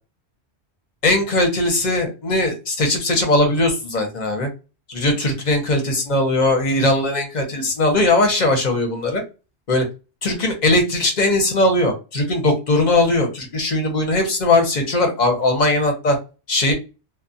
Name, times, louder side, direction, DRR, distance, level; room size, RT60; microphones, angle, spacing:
voice 1, 1.0-4.5 4.9-9.2 9.7-9.8 10.2-16.2 16.5-16.7, left 2 dB, 45° left, 3 dB, 0.8 m, -19 dB
2.2 x 2.1 x 2.6 m, 0.30 s
omnidirectional pair, 1.1 m